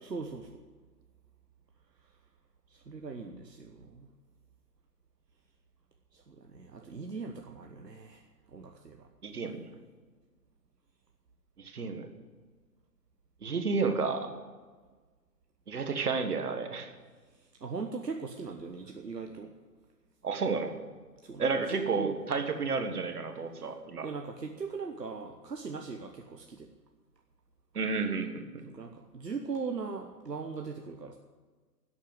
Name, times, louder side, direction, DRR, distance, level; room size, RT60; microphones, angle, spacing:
voice 1, 0.0-0.6 2.7-4.1 6.1-8.2 8.5-9.1 17.6-19.5 21.2-22.2 23.6-23.8 24.0-26.7 28.7-31.2, right 4 dB, 80° right, 4 dB, 1.2 m, -40 dB
voice 2, 9.2-9.7 11.6-12.1 13.4-14.3 15.7-16.9 20.2-20.7 21.4-24.1 27.8-28.6, right 4 dB, 65° right, 6 dB, 1.9 m, -31 dB
11.5 x 8.5 x 9.4 m, 1.4 s
figure-of-eight pair, 120°, 49 cm